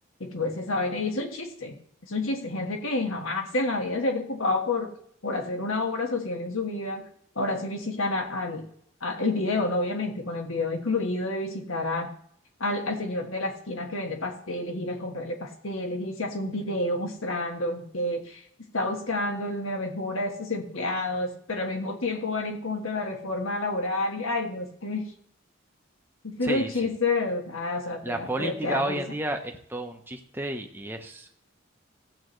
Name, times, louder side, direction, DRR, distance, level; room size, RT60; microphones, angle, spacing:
voice 1, 0.2-1.8 2.1-4.9 5.2-7.1 7.3-8.6 9.0-12.1 12.6-18.4 18.7-25.1 26.2-29.2, left 2 dB, 75° left, 3 dB, 1.6 m, -29 dB
voice 2, 28.0-31.4, right 1 dB, 10° right, 4 dB, 0.8 m, -32 dB
15.5 x 7.8 x 3.2 m, 0.68 s
head